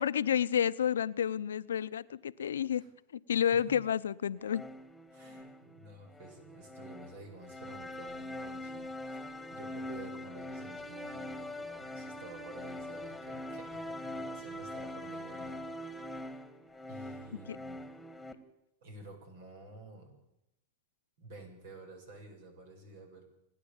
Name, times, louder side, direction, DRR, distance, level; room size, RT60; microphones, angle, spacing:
voice 1, 0.0-2.8 3.1-4.6 17.5-17.6, left 9 dB, 90° left, 15 dB, 0.7 m, -30 dB
sound 1, 4.4-18.3, left 1 dB, 5° left, 2.0 m, -43 dB
voice 2, 5.1-16.1 16.9-17.8 18.8-20.2 21.2-23.2, right 2 dB, 70° right, 4 dB, 7.7 m, -51 dB
29.0 x 10.0 x 8.8 m, 0.85 s
hypercardioid pair, 115°, 0 cm